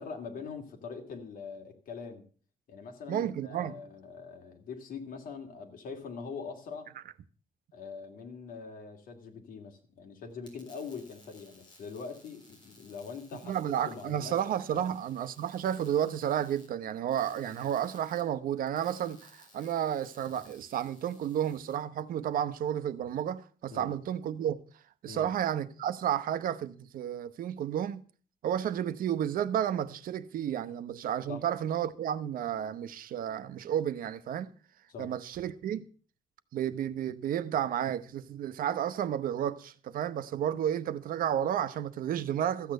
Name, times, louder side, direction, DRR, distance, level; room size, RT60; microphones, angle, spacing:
voice 1, 0.0-2.2 2.7-6.9 7.7-13.6 13.9-14.4 14.7-14.9 23.7-23.9 25.1-25.3 31.3-31.4 34.9-35.1, left 5 dB, 80° left, 2.4 m, -43 dB
voice 2, 3.1-3.8 13.4-24.6 25.0-28.0 28.4-34.5 35.0-35.8 36.5-42.7, right 10 dB, 85° right, 0.8 m, -32 dB
sound 1, 10.3-21.8, left 1 dB, 30° left, 3.7 m, -59 dB
13.5 x 8.5 x 6.5 m
wide cardioid pair, 160°, 14 cm